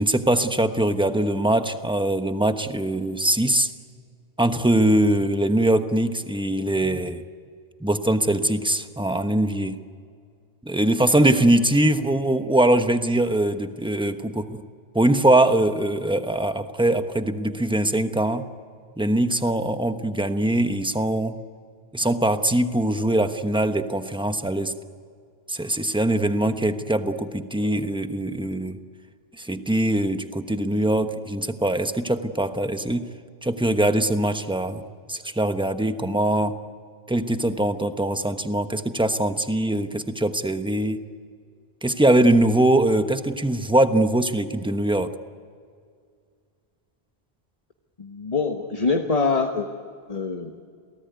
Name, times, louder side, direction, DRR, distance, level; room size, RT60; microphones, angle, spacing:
voice 1, 0.0-3.7 4.4-7.2 7.8-9.8 10.6-14.6 14.9-18.5 19.0-21.4 21.9-24.7 25.5-28.8 29.4-33.1 33.4-34.8 35.1-36.6 37.1-41.0 41.8-45.1, right 1 dB, 5° right, 8 dB, 1.0 m, -22 dB
voice 2, 48.0-49.7 50.1-50.5, left 4 dB, 35° left, 4 dB, 1.3 m, -24 dB
28.5 x 18.5 x 9.5 m, 2.1 s
omnidirectional pair, 1.1 m